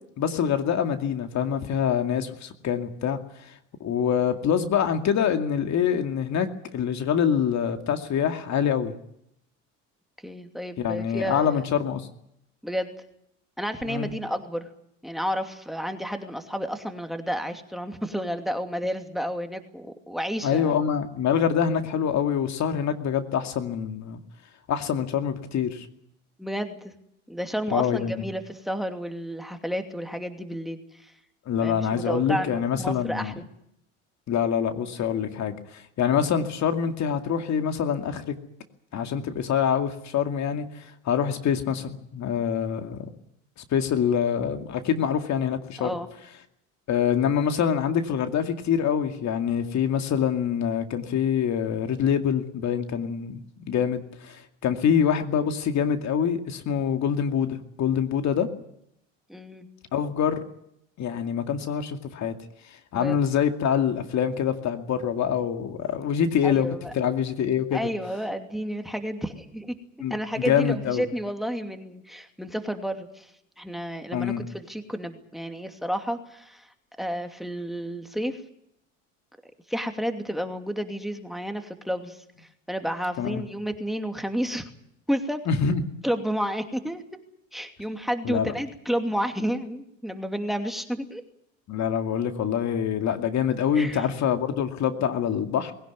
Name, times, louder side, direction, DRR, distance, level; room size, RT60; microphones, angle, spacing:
voice 1, 0.2-3.2 3.8-6.5 6.7-8.9 10.8-12.1 13.9-14.1 20.4-24.2 24.7-25.9 27.7-28.1 31.5-33.3 34.3-38.3 38.9-43.1 43.7-45.9 46.9-53.4 53.7-58.5 59.9-60.4 61.0-62.3 62.7-66.7 66.9-67.8 70.0-71.1 74.1-74.4 83.2-83.4 85.5-85.8 88.2-88.5 91.7-95.7, left 8 dB, 45° left, 6 dB, 2.4 m, -25 dB
voice 2, 10.2-11.6 12.6-12.9 13.6-14.7 15.0-20.7 26.4-26.9 27.3-31.1 31.6-33.4 45.8-46.1 54.6-54.8 59.3-59.7 62.9-63.2 66.4-66.9 67.7-69.7 70.1-73.3 73.6-78.4 79.7-84.7 85.1-85.4 86.0-87.0 87.5-91.2 93.7-94.1, equal, ahead, 6 dB, 2.7 m, -31 dB
21.0 x 17.5 x 9.4 m, 0.75 s
hypercardioid pair, 80°, 38 cm